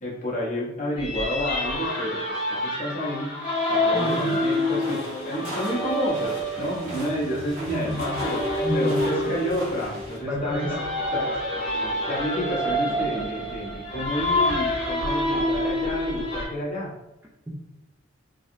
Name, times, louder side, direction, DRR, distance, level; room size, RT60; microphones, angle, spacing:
voice 1, 0.0-3.3 3.7-8.4 8.7-10.7 11.1-11.2 12.1-16.9, equal, 40° left, -4 dB, 0.9 m, -30 dB
sound 1, 1.0-16.5, left 1 dB, 65° left, 1.1 m, -27 dB
voice 2, 3.9-4.5 7.7-8.2 8.6-9.3 10.2-11.4 17.5-17.6, equal, 10° right, -3 dB, 0.4 m, -31 dB
sound 2, 3.9-10.2, right 1 dB, 45° right, 1.4 m, -41 dB
3.1 x 2.7 x 2.6 m, 0.90 s
head